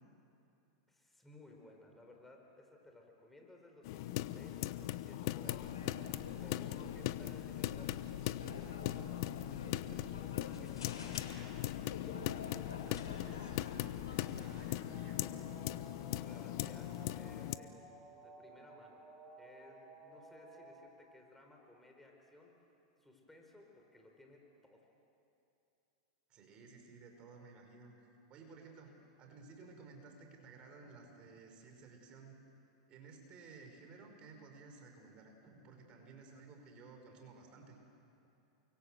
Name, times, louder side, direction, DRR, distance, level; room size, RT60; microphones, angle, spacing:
voice 1, 0.9-5.7 6.4-7.9 8.5-9.1 9.4-11.2 15.9-17.8 18.2-19.0 19.4-22.7 23.0-24.8 28.8-29.0, left 2 dB, 5° left, 2 dB, 4.7 m, -60 dB
sound 1, 3.8-17.6, left 14 dB, 60° left, 1.0 m, -40 dB
sound 2, 5.4-14.6, left 4 dB, 80° left, 6.4 m, -49 dB
voice 2, 12.8-13.8 14.1-15.4 26.3-32.3 32.9-37.8, right 4 dB, 40° right, 4 dB, 5.6 m, -56 dB
sound 3, 14.9-20.9, right 2 dB, 20° right, 6.2 m, -56 dB
29.0 x 24.5 x 7.9 m, 2.8 s
hypercardioid pair, 100°, 3 cm